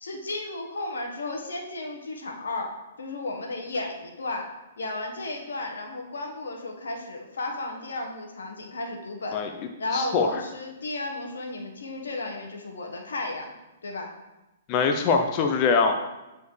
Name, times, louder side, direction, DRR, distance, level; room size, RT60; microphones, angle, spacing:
voice 1, 0.0-4.5 4.8-9.4 9.8-13.5 13.8-14.1, left 2 dB, 85° left, 2 dB, 1.3 m, -34 dB
voice 2, 9.9-10.4 14.7-15.9, left 5 dB, 35° left, 4 dB, 0.6 m, -23 dB
9.2 x 4.2 x 3.3 m, 1.0 s
hypercardioid pair, 135°, 0 cm